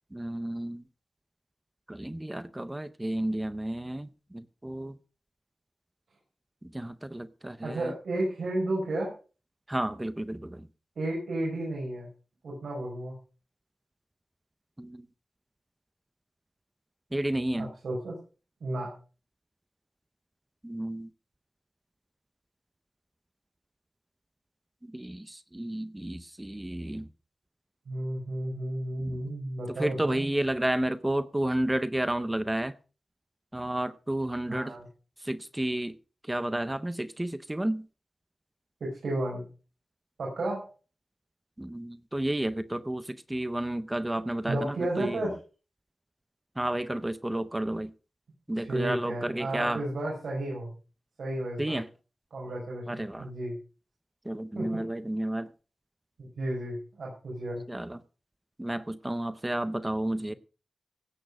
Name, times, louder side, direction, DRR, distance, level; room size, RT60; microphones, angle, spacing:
voice 1, 0.1-0.8 1.9-5.0 6.6-7.9 9.7-10.7 14.8-15.1 17.1-17.7 20.6-21.1 24.8-27.1 29.0-29.2 29.8-32.7 33.5-34.7 35.2-35.9 36.3-37.9 41.6-45.3 46.6-47.9 48.5-49.8 51.6-51.9 52.9-53.3 54.3-55.5 57.7-58.0 58.6-60.3, right 1 dB, 10° right, 0.6 m, -31 dB
voice 2, 7.6-9.1 11.0-12.1 12.4-13.1 17.5-18.1 18.6-19.0 27.9-30.3 34.5-34.9 38.8-39.4 40.2-40.7 44.5-45.4 48.5-50.7 51.2-51.8 52.3-53.6 54.6-54.7 56.2-57.6, right 1 dB, 75° right, 6.0 m, -32 dB
16.5 x 8.7 x 5.0 m
wide cardioid pair, 175°, 0 cm